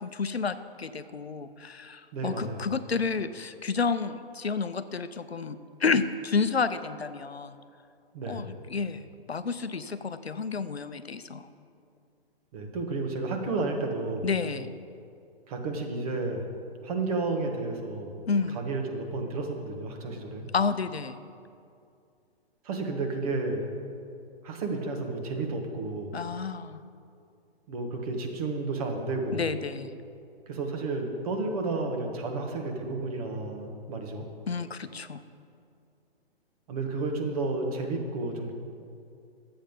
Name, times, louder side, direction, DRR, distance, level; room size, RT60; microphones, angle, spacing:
voice 1, 0.0-7.6 8.3-11.5 14.2-14.7 18.3-18.6 20.5-21.2 26.1-26.8 29.3-30.0 34.5-35.2, left 5 dB, 80° left, 11 dB, 0.7 m, -30 dB
voice 2, 2.1-2.6 8.1-8.6 12.5-14.3 15.5-16.5 16.8-18.2 18.5-20.5 22.6-23.6 24.4-26.2 27.7-29.5 30.5-34.3 36.7-38.5, right 3 dB, 35° right, 3 dB, 1.5 m, -32 dB
12.0 x 7.9 x 5.2 m, 2.4 s
figure-of-eight pair, 125°, 31 cm